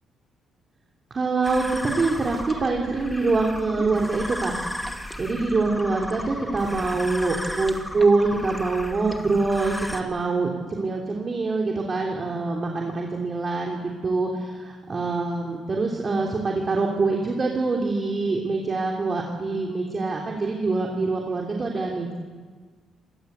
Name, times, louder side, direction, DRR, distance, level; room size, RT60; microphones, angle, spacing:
voice 1, 1.1-22.1, right 3 dB, 35° right, 0 dB, 3.3 m, -25 dB
sound 1, 1.4-10.0, left 1 dB, 5° left, 2.4 m, -34 dB
26.0 x 20.0 x 8.2 m, 1.5 s
cardioid pair, 90°, 0 cm